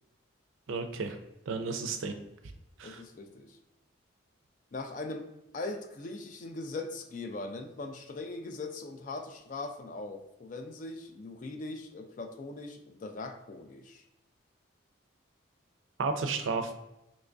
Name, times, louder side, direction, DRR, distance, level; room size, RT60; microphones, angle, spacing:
voice 1, 0.7-1.2 1.5-2.1 2.8-3.0 16.0-16.7, right 4 dB, 75° right, 7 dB, 0.4 m, -32 dB
voice 2, 2.8-3.6 4.7-5.3 5.5-14.0, left 2 dB, 40° left, 6 dB, 0.3 m, -40 dB
3.3 x 3.0 x 2.5 m, 0.90 s
head